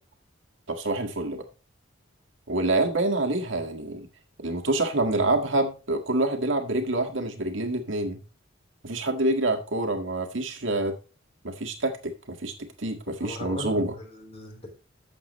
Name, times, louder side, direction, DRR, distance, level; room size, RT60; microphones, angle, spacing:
voice 1, 0.7-1.4 2.5-4.1 4.4-8.2 8.8-11.0 11.4-12.5 12.8-13.9, right 2 dB, 75° right, 4 dB, 1.8 m, -27 dB
voice 2, 13.2-14.7, left 2 dB, 35° left, 2 dB, 3.9 m, -38 dB
12.0 x 7.8 x 3.1 m, 0.33 s
head